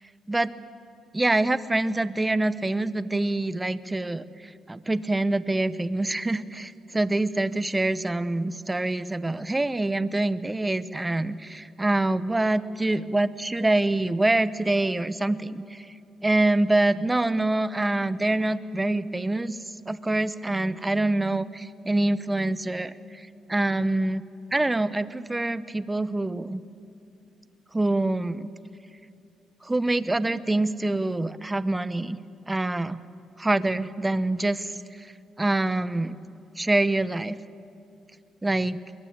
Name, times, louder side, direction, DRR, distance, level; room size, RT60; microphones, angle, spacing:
voice 1, 1.1-15.9 16.2-24.2 24.5-26.6 27.7-28.5 29.6-32.2 32.5-33.0 33.4-35.1 35.4-36.2 36.6-37.4 38.4-38.8, right 2 dB, 15° right, 15 dB, 0.8 m, -25 dB
22.5 x 21.5 x 8.7 m, 2.5 s
cardioid pair, 90°, 0 cm